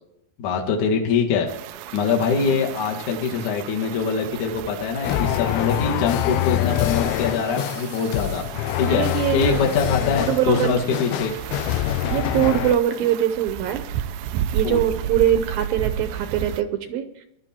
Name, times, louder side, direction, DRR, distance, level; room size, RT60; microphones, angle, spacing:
voice 1, 0.4-1.5 1.9-8.4 8.8-9.0 9.3-11.3 14.6-14.8, left 5 dB, 55° left, 0 dB, 2.8 m, -23 dB
sound 1, 1.5-16.6, right 10 dB, 90° right, 2.0 m, -33 dB
voice 2, 2.3-2.6 8.9-9.6 10.3-10.9 12.1-13.9 14.5-17.3, right 10 dB, 70° right, 9 dB, 2.3 m, -23 dB
sound 2, 5.0-12.8, left 14 dB, 80° left, 2.3 m, -25 dB
19.5 x 12.0 x 4.4 m, 0.80 s
omnidirectional pair, 4.9 m